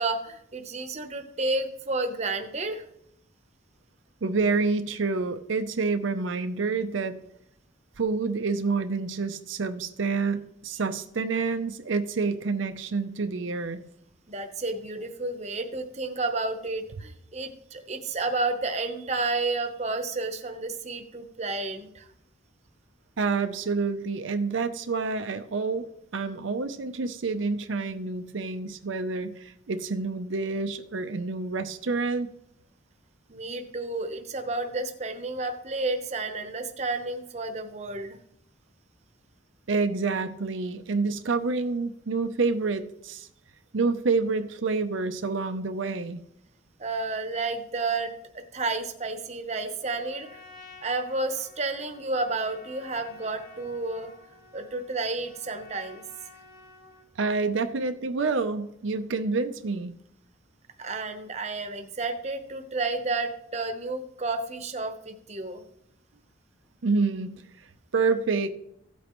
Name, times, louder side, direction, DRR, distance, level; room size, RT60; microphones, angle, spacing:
voice 1, 0.0-2.8 14.3-22.1 33.3-38.2 46.8-48.1 48.5-50.3 50.8-54.1 54.5-56.0 60.8-65.6, right 3 dB, 35° right, 7 dB, 0.9 m, -31 dB
voice 2, 4.2-7.2 8.0-13.8 23.2-32.3 39.7-43.3 43.7-46.2 57.2-60.0 66.8-67.3 67.9-68.5, right 4 dB, 90° right, 9 dB, 0.6 m, -28 dB
Trumpet, 49.8-57.1, left 3 dB, 50° left, 2.2 m, -52 dB
15.5 x 8.3 x 3.1 m, 0.77 s
head